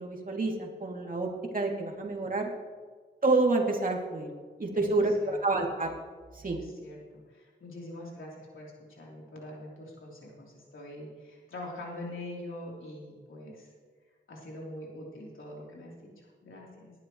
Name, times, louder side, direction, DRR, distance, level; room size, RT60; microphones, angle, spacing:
voice 1, 0.0-2.5 3.2-4.3 4.6-5.9 6.4-6.6, right 2 dB, 45° right, -1 dB, 2.6 m, -28 dB
voice 2, 4.7-5.4 6.4-7.0 7.3-13.7 14.3-16.9, left 1 dB, 80° left, -3 dB, 3.5 m, -44 dB
19.0 x 11.5 x 3.1 m, 1.5 s
cardioid pair, 65°, 20 cm